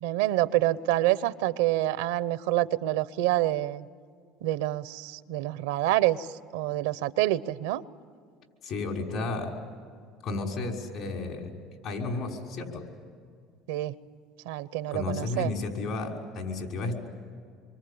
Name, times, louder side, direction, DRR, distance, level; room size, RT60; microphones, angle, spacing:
voice 1, 0.0-3.9 4.4-7.8 13.7-13.9 14.4-15.5, right 15 dB, 85° right, 16 dB, 0.8 m, -27 dB
voice 2, 8.6-9.5 10.2-11.5 11.8-12.8 14.9-16.9, left 3 dB, 65° left, 2 dB, 6.0 m, -32 dB
27.0 x 24.0 x 8.8 m, 2.1 s
supercardioid pair, 95°, 0 cm